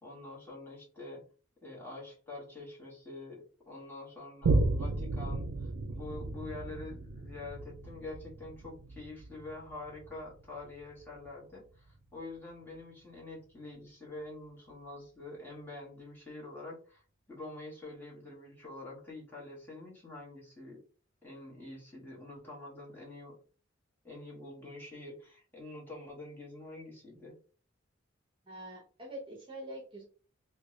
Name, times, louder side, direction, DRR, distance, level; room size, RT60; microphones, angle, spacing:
voice 1, 0.0-1.2 1.6-17.0 17.3-20.8 21.2-23.4 24.0-27.4, left 2 dB, 10° left, -5 dB, 1.4 m, -46 dB
Boom, 4.4-11.4 11.9-12.0, right 2 dB, 80° right, 0.4 m, -34 dB
voice 2, 28.5-30.0, right 1 dB, 25° right, -1 dB, 0.7 m, -44 dB
3.3 x 2.2 x 3.1 m, 0.39 s
head